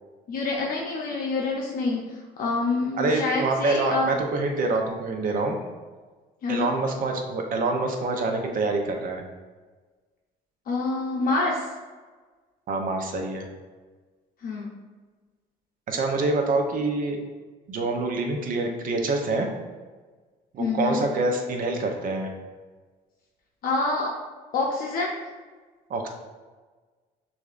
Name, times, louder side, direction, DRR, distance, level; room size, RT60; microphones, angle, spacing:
voice 1, 0.3-2.0 2.4-4.1 6.4-6.7 10.7-11.6 14.4-14.7 20.6-21.0 23.6-24.1 24.5-25.2, left 3 dB, 60° left, -2 dB, 0.7 m, -26 dB
voice 2, 3.0-5.6 6.5-9.2 12.7-13.4 15.9-17.2 17.7-19.5 20.5-22.3 25.9-26.1, right 3 dB, 55° right, 3 dB, 0.7 m, -26 dB
6.5 x 2.6 x 2.5 m, 1.4 s
cardioid pair, 110°, 17 cm